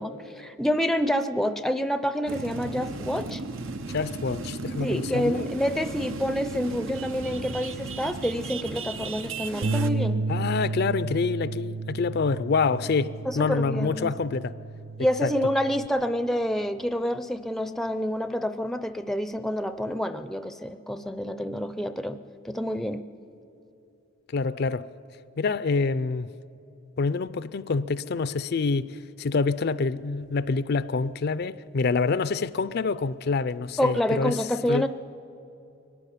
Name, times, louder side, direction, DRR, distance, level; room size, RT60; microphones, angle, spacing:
voice 1, 0.0-3.4 4.8-10.2 13.2-14.3 15.0-22.2 22.4-23.0 33.8-34.9, equal, ahead, 0.5 m, -28 dB
sound 1, 2.3-9.9, right 3 dB, 80° right, 0.9 m, -35 dB
voice 2, 3.9-5.5 10.3-14.5 15.2-15.3 24.3-24.9 25.4-26.3 27.0-28.9 29.2-34.4 34.7-34.9, left 4 dB, 55° left, 0.4 m, -26 dB
Bass guitar, 9.6-15.9, right 3 dB, 60° right, 0.6 m, -32 dB
22.5 x 12.5 x 10.0 m
head